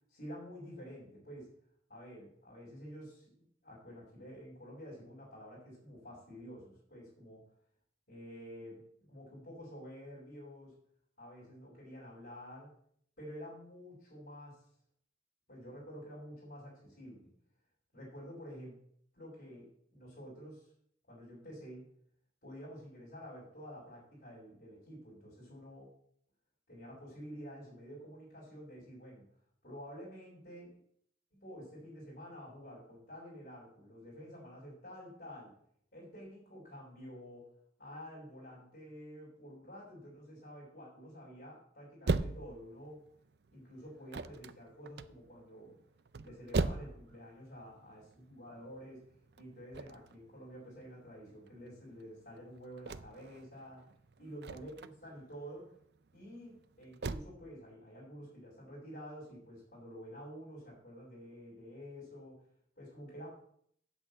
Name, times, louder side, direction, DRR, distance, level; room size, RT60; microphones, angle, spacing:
voice 1, 0.1-1.5 1.9-7.5 8.1-8.8 9.1-10.7 11.2-12.7 13.2-14.6 15.5-17.3 17.9-18.8 19.1-20.7 21.1-21.8 22.4-25.9 26.7-29.3 29.6-30.7 31.3-35.5 35.9-37.5 37.8-43.0 43.5-45.8 46.2-49.0 49.4-53.8 54.2-55.7 56.1-62.4 62.8-63.3, equal, 60° left, -9 dB, 5.0 m, -49 dB
sound 1, 42.1-57.2, right 3 dB, 70° right, 0.5 m, -40 dB
8.2 x 6.4 x 8.2 m, 0.66 s
head